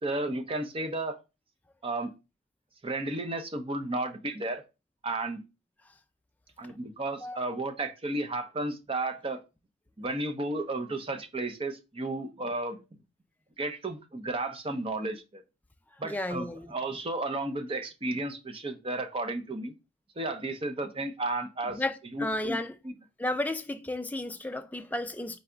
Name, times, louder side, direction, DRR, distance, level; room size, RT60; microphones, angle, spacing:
voice 1, 0.0-1.2 1.8-2.1 2.8-4.6 5.0-5.4 6.6-9.4 10.0-12.8 13.6-15.4 16.0-19.7 20.2-21.8 22.1-22.6 22.8-22.9, right 2 dB, 25° right, 0.6 m, -33 dB
voice 2, 16.0-16.7 21.7-22.8 23.2-25.4, left 1 dB, 10° left, 0.3 m, -33 dB
4.0 x 3.4 x 3.8 m
head